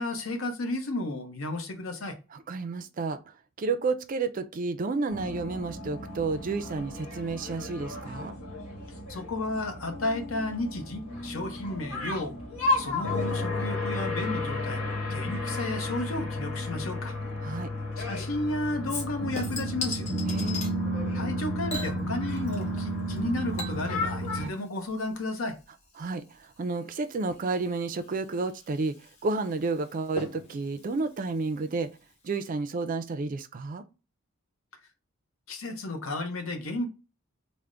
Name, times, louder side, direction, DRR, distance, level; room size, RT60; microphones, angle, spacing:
voice 1, 0.0-2.2 9.1-12.3 12.8-14.8 15.1-17.2 18.0-20.1 21.1-25.6 35.5-36.9, left 2 dB, 65° left, 0.8 m, -33 dB
voice 2, 2.3-8.3 17.4-17.7 20.3-20.7 26.0-31.9 32.2-33.9, right 3 dB, 40° right, 0.4 m, -31 dB
sound 1, 5.1-24.5, left 1 dB, 80° left, 1.2 m, -32 dB
Chink clink / Liquid, 18.9-20.7 21.7-22.8 23.1-32.1 32.5-32.6, left 3 dB, 30° left, 0.8 m, -41 dB
3.4 x 2.1 x 3.7 m
head